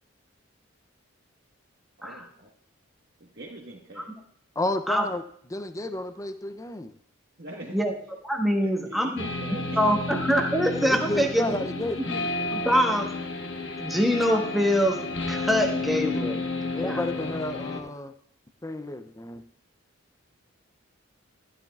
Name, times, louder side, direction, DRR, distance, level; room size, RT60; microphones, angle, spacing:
voice 1, 2.0-2.5 3.2-4.1 7.4-7.8 8.6-9.9, right 2 dB, 50° right, -3 dB, 1.4 m, -42 dB
voice 2, 4.6-5.2 5.5-6.9 10.8-12.0 16.7-18.1 18.6-19.4, left 2 dB, 15° left, 9 dB, 0.5 m, -31 dB
voice 3, 8.2-9.2 9.8-11.4 12.0-12.2 12.5-13.1 13.8-16.4 16.8-17.0, equal, ahead, 1 dB, 1.2 m, -24 dB
sound 1, 9.2-17.8, left 3 dB, 60° left, 1.4 m, -31 dB
13.0 x 12.0 x 2.4 m, 0.65 s
head